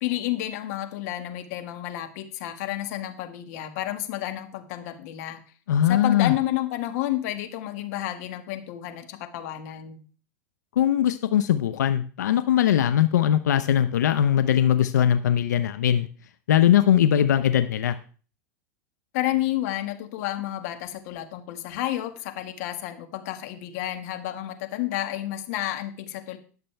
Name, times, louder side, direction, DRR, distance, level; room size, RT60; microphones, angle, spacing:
voice 1, 0.0-5.4 5.8-10.0 19.1-26.4, left 14 dB, 65° left, 7 dB, 1.8 m, -30 dB
voice 2, 5.7-6.3 10.8-16.1 16.5-18.0, left 10 dB, 85° left, 10 dB, 0.7 m, -20 dB
20.0 x 6.8 x 3.4 m, 0.39 s
hypercardioid pair, 105°, 9 cm